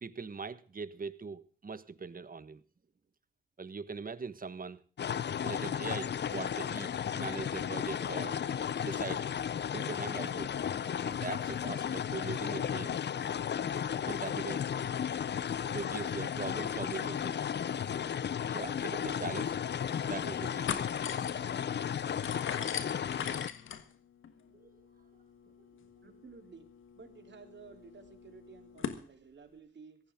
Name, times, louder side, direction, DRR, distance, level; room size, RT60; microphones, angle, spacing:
voice 1, 0.0-2.6 3.6-4.8 5.4-8.5 8.8-9.3 9.7-10.6 11.0-12.9 14.0-14.7 15.2-15.3 15.7-17.4 18.5-19.6 20.0-20.7 24.5-24.9, right 4 dB, 45° right, 1.4 m, -41 dB
sound 1, 5.0-23.5, left 8 dB, 60° left, 0.6 m, -34 dB
sound 2, 19.7-20.1 20.4-29.0, left 8 dB, 90° left, 1.5 m, -42 dB
voice 2, 26.0-26.7 27.0-30.0, right 5 dB, 65° right, 3.7 m, -53 dB
17.0 x 15.0 x 3.7 m
supercardioid pair, 45°, 20 cm